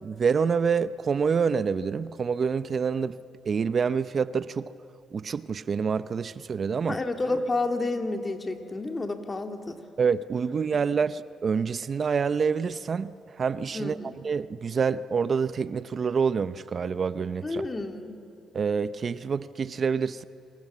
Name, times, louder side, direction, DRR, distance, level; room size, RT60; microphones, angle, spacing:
voice 1, 0.0-3.2 3.5-4.7 5.1-6.9 10.0-13.1 13.4-14.0 14.2-17.6 18.5-20.2, right 6 dB, 45° right, 0.6 m, -27 dB
voice 2, 6.9-9.8 13.7-14.2 17.4-18.1, left 2 dB, 25° left, 2.6 m, -30 dB
28.0 x 26.5 x 7.4 m
cardioid pair, 90°, 0 cm